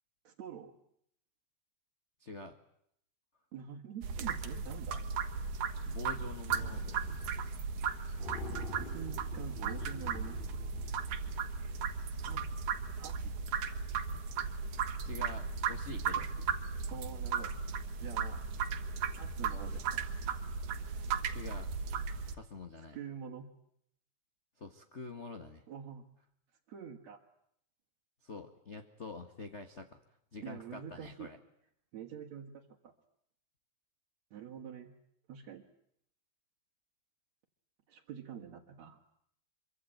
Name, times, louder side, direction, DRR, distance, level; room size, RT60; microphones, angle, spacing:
voice 1, 0.2-0.8 3.5-5.0 8.7-10.4 12.3-12.5 13.0-13.3 16.1-16.5 16.9-17.5 18.0-18.5 19.2-20.0 22.9-23.5 25.7-26.0 26.7-27.2 30.4-31.3 31.9-32.9 34.3-34.9 35.3-35.7 37.9-39.0, right 8 dB, 65° right, -1 dB, 2.8 m, -46 dB
voice 2, 2.2-2.6 5.9-6.8 7.3-7.6 15.0-16.3 21.3-21.7 22.3-23.0 24.6-25.6 28.2-30.0 30.3-31.4, left 3 dB, 35° left, 7 dB, 1.2 m, -46 dB
sound 1, 4.0-22.3, right 6 dB, 90° right, 3.0 m, -36 dB
sound 2, 6.5-7.5 7.8-7.9 8.2-11.6, left 4 dB, 15° left, 3.4 m, -47 dB
25.5 x 24.0 x 9.1 m, 0.71 s
omnidirectional pair, 3.4 m